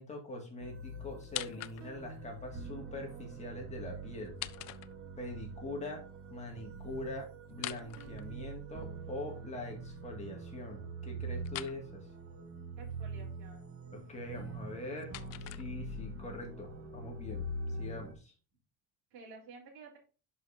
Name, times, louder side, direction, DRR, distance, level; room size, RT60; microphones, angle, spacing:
voice 1, 0.0-4.4 5.2-6.0 6.3-12.0 13.9-15.1 15.4-17.5 17.8-18.3, left 1 dB, 20° left, 0 dB, 2.1 m, -43 dB
sound 1, 0.6-18.1, right 2 dB, 35° right, 1.3 m, -44 dB
sound 2, 1.2-2.2 4.1-5.4 7.5-8.8 11.4-11.8 14.5-16.1, left 16 dB, 45° left, 0.5 m, -44 dB
voice 2, 12.8-13.7 19.1-20.0, right 4 dB, 75° right, -4 dB, 3.6 m, -52 dB
11.0 x 5.6 x 2.7 m, 0.34 s
cardioid pair, 170°, 38 cm